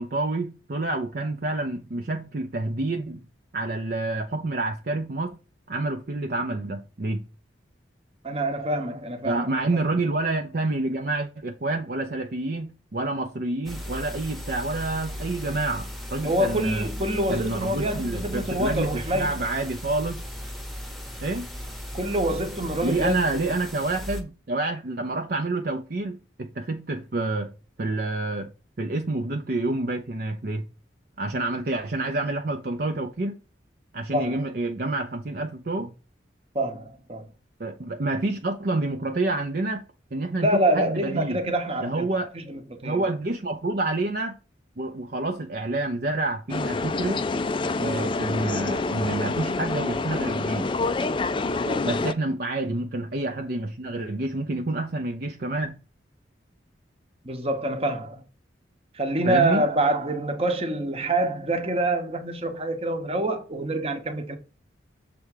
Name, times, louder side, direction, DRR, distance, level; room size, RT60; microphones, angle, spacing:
voice 1, 0.0-3.2 3.5-5.4 5.7-7.3 9.2-16.9 17.3-20.2 21.2-21.5 22.8-27.5 27.8-28.5 28.8-30.7 31.2-33.4 33.9-35.9 37.6-39.8 40.1-41.4 41.8-42.3 42.8-44.4 44.8-47.2 47.8-50.7 51.8-55.8 59.2-59.6, right 2 dB, 55° right, 0.6 m, -28 dB
voice 2, 8.2-9.8 16.2-19.3 21.9-23.3 34.1-34.4 36.5-37.3 40.4-42.1 42.5-43.1 51.4-51.9 57.2-58.2 58.9-64.4, right 1 dB, 30° right, 1.0 m, -26 dB
sound 1, 13.6-24.2, left 1 dB, ahead, 1.0 m, -36 dB
sound 2, 46.5-52.1, left 3 dB, 25° left, 0.3 m, -27 dB
6.9 x 3.6 x 4.8 m
head